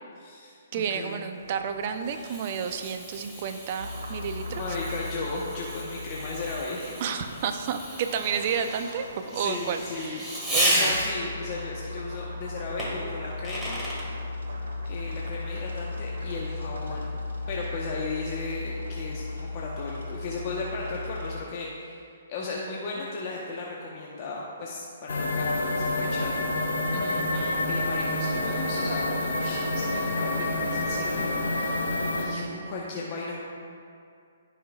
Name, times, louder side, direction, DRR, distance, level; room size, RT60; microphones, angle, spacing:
voice 1, 0.2-1.3 3.3-3.5 4.5-7.0 9.3-10.3 10.7-13.8 14.9-22.0 22.3-26.3 27.7-33.4, left 3 dB, 40° left, -4 dB, 1.1 m, -36 dB
voice 2, 0.7-4.7 7.0-10.9 26.9-27.7, right 7 dB, 45° right, 7 dB, 0.6 m, -31 dB
Fireworks, 1.4-11.4 12.8-14.1, equal, 5° right, 1.8 m, -33 dB
sound 1, 3.8-21.4, left 2 dB, 75° right, 1.7 m, -37 dB
sound 2, 25.1-32.2, left 2 dB, 75° left, 1.8 m, -28 dB
15.5 x 5.7 x 2.4 m, 2.4 s
hypercardioid pair, 140°, 0 cm